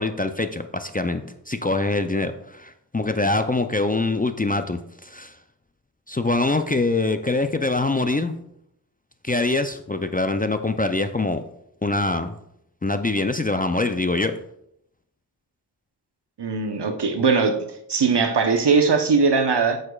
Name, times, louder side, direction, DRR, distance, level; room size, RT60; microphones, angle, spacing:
voice 1, 0.0-5.3 6.1-8.3 9.2-11.4 11.8-12.4 12.8-14.3, left 2 dB, 20° left, 8 dB, 0.4 m, -24 dB
voice 2, 16.4-17.5 17.9-19.8, right 4 dB, 65° right, 5 dB, 0.9 m, -20 dB
8.6 x 6.6 x 2.3 m, 0.76 s
wide cardioid pair, 50°, 43 cm